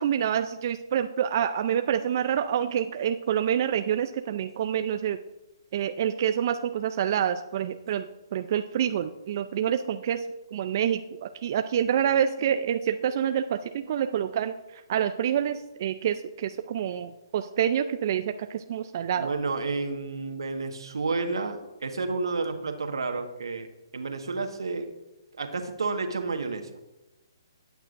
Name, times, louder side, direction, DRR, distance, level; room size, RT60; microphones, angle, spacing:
voice 1, 0.0-5.2 5.7-10.2 10.5-19.3, right 9 dB, 45° right, 8 dB, 0.5 m, -27 dB
voice 2, 19.2-23.7 23.9-24.9 25.4-26.7, right 3 dB, 85° right, 5 dB, 1.5 m, -30 dB
17.0 x 9.0 x 2.6 m, 0.99 s
hypercardioid pair, 150°, 2 cm